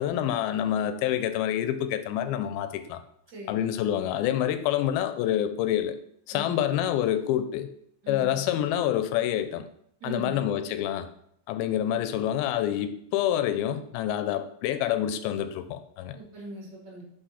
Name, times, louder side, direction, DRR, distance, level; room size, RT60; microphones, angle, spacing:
voice 1, 0.0-3.0 3.5-6.0 6.3-7.7 8.1-9.7 10.0-11.1 11.5-16.2, left 11 dB, 90° left, 9 dB, 2.4 m, -27 dB
voice 2, 3.3-3.6 6.3-6.6 8.0-8.4 10.0-10.4 16.1-17.0, right 2 dB, 40° right, -2 dB, 1.9 m, -40 dB
5.6 x 5.4 x 4.2 m, 0.70 s
omnidirectional pair, 4.2 m